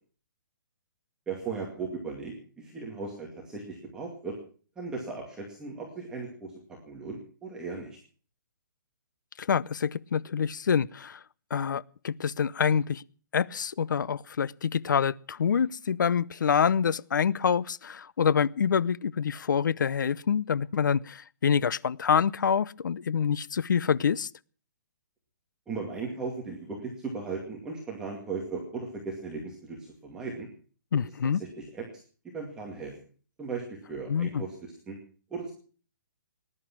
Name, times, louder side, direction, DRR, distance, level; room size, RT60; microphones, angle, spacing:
voice 1, 1.3-4.4 4.8-8.0 25.7-30.5 31.6-31.8 32.3-32.9 33.4-34.6 34.9-35.0 35.3-35.5, right 4 dB, 5° right, 2.2 m, -37 dB
voice 2, 9.4-11.2 11.5-13.0 13.3-24.3 30.9-31.4 34.1-34.4, left 7 dB, 65° left, 0.7 m, -26 dB
19.0 x 11.0 x 6.0 m
hypercardioid pair, 175°, 11 cm